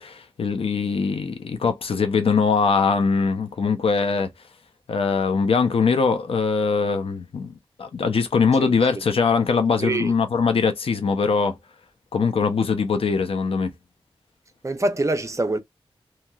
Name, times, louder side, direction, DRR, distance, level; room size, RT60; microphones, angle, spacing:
voice 1, 0.0-4.3 4.9-7.5 7.8-11.6 12.1-13.7, left 5 dB, 80° left, 0.7 m, -22 dB
voice 2, 8.6-8.9 9.8-10.1 14.6-15.6, right 2 dB, 30° right, 0.8 m, -25 dB
2.9 x 2.8 x 2.3 m
wide cardioid pair, 70°, 10 cm